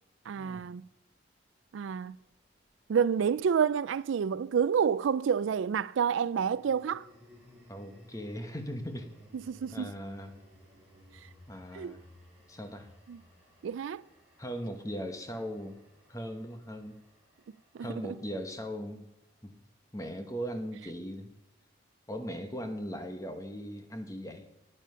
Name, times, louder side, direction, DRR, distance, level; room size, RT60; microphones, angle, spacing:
voice 1, 0.3-0.8 1.7-2.1 2.9-7.0 9.3-9.9 11.7-11.9 13.1-13.2 13.6-14.0 17.7-18.1, right 7 dB, 75° right, 0.3 m, -29 dB
sound 1, 2.2-4.5 6.1-18.4, equal, 5° right, 4.4 m, -58 dB
voice 2, 7.7-9.1 9.7-10.3 11.5-12.0 12.5-12.9 14.4-15.8 16.1-17.0 17.8-19.0 19.4-19.5 19.9-21.3 22.1-24.4, equal, 15° left, 1.0 m, -39 dB
9.9 x 9.9 x 5.5 m
head